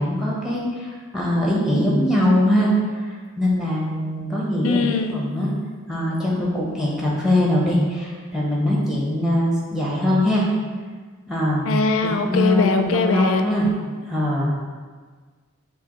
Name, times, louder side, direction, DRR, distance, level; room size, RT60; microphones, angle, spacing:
voice 1, 0.0-5.5 5.9-10.5 11.3-11.7 12.0-13.7 14.1-14.5, left 1 dB, ahead, -4 dB, 0.7 m, -22 dB
voice 2, 4.6-5.2 11.7-13.4, left 3 dB, 65° left, 6 dB, 0.4 m, -21 dB
6.5 x 2.7 x 2.9 m, 1.5 s
head